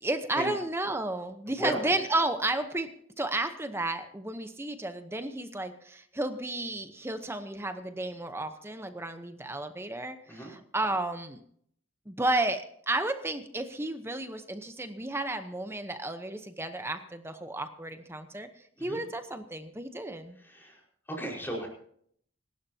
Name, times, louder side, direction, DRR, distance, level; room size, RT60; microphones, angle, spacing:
voice 1, 0.0-11.4 12.1-18.5 18.8-20.4, right 2 dB, 10° right, 8 dB, 0.9 m, -32 dB
voice 2, 1.5-1.8 10.3-10.5 18.8-19.0 20.4-20.8 21.1-21.7, right 1 dB, 10° left, -2 dB, 4.9 m, -35 dB
26.5 x 12.5 x 2.8 m, 0.63 s
head